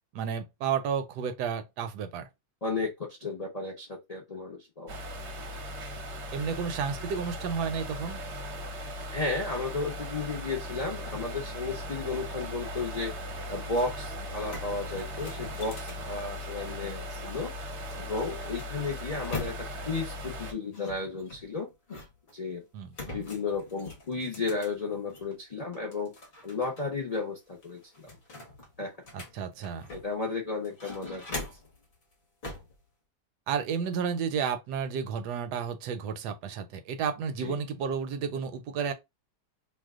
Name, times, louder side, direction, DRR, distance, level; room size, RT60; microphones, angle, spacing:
voice 1, 0.1-2.3 6.3-8.2 22.7-23.2 29.1-29.9 33.5-38.9, right 6 dB, 75° right, 1.1 m, -32 dB
voice 2, 2.6-5.0 9.1-13.1 13.5-17.5 18.0-21.7 22.3-22.6 23.1-26.1 26.4-28.2 28.8-28.9 29.9-31.5 37.4-37.6, left 3 dB, 60° left, 0.4 m, -33 dB
sound 1, 4.9-20.5, equal, 55° right, 0.8 m, -38 dB
sound 2, 13.9-14.0 14.3-17.0 17.9-19.9 20.7-22.3 22.9-25.3 25.7-26.8 27.1-27.2 27.6-30.2 30.6-31.8 32.4-32.7, left 3 dB, 45° left, 0.8 m, -42 dB
2.8 x 2.2 x 3.5 m
omnidirectional pair, 1.9 m